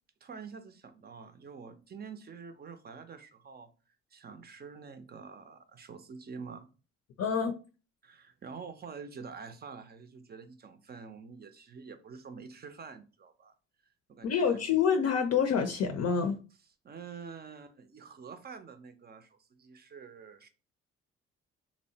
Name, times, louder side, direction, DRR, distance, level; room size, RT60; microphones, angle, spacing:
voice 1, 0.2-3.7 4.1-6.7 8.0-13.5 14.1-14.8 16.8-20.5, right 5 dB, 35° right, 0.5 m, -47 dB
voice 2, 7.2-7.5 14.2-16.4, left 6 dB, 60° left, 0.5 m, -27 dB
2.7 x 2.1 x 2.7 m
supercardioid pair, 70°, 29 cm